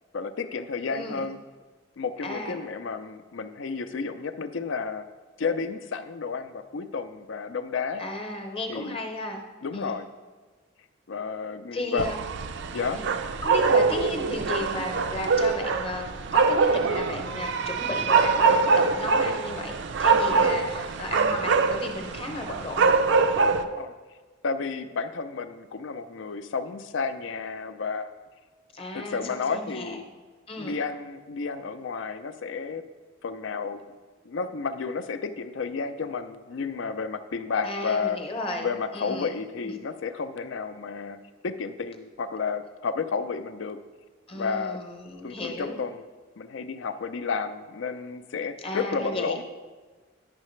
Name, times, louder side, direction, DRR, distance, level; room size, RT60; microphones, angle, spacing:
voice 1, 0.1-1.4 2.0-5.1 5.4-8.0 8.7-9.0 9.6-10.1 11.1-12.1 12.7-13.0 20.4-20.6 23.6-23.9 24.4-28.1 28.9-30.0 30.6-32.8 33.2-33.8 34.2-38.2 38.6-43.8 44.3-44.8 45.2-46.0 46.4-49.4, left 5 dB, 60° left, 11 dB, 0.4 m, -31 dB
voice 2, 0.9-1.3 2.2-2.6 8.0-9.4 9.7-10.0 11.7-12.2 12.9-13.1 13.4-23.0 28.7-30.0 30.5-30.8 37.6-39.3 44.3-45.8 48.6-49.4, left 2 dB, 25° left, 3 dB, 0.8 m, -34 dB
sound 1, 12.0-23.6, right 4 dB, 60° right, 0.4 m, -24 dB
9.5 x 6.5 x 3.1 m, 1.4 s
head